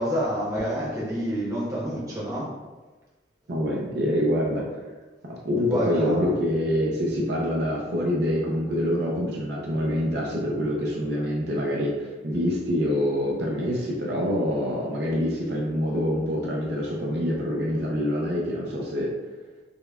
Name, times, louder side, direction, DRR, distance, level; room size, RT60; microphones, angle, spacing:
voice 1, 0.0-2.5 5.6-6.3, equal, 20° right, -6 dB, 0.8 m, -28 dB
voice 2, 3.5-4.6 5.2-19.1, equal, 60° right, -3 dB, 0.5 m, -26 dB
5.2 x 2.2 x 2.3 m, 1.3 s
head